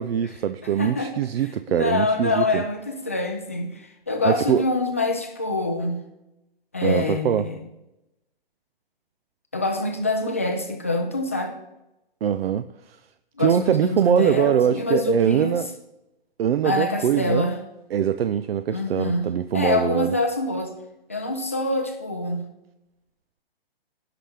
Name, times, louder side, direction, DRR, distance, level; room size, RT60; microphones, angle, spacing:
voice 1, 0.0-2.6 4.2-4.6 6.8-7.5 12.2-13.0 13.4-15.7 16.4-17.5 17.9-20.1, right 9 dB, 75° right, 12 dB, 0.5 m, -22 dB
voice 2, 0.8-1.1 1.7-6.0 6.7-7.6 9.5-11.6 13.4-15.6 16.6-17.6 18.7-19.3 19.5-20.7 21.1-22.5, left 2 dB, 15° left, 4 dB, 0.3 m, -25 dB
16.0 x 5.9 x 3.4 m, 0.95 s
hypercardioid pair, 165°, 30 cm